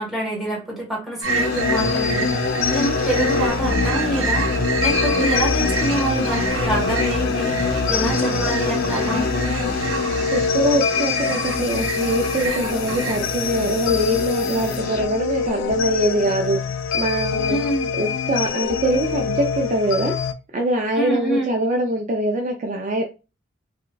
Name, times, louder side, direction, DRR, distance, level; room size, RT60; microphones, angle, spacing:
voice 1, 0.0-4.5 4.8-9.3 17.5-17.9 20.9-21.6, right 1 dB, ahead, -3 dB, 1.3 m, -26 dB
sound 1, 1.2-13.2, right 4 dB, 85° right, 0.5 m, -29 dB
sound 2, 1.3-15.0, left 3 dB, 50° left, 0.7 m, -26 dB
sound 3, 1.6-20.3, left 6 dB, 75° left, 0.3 m, -25 dB
voice 2, 10.3-16.6 16.9-17.6 18.0-20.1 20.5-23.0, right 1 dB, 40° right, 2 dB, 0.4 m, -23 dB
4.2 x 2.2 x 2.3 m, 0.30 s
head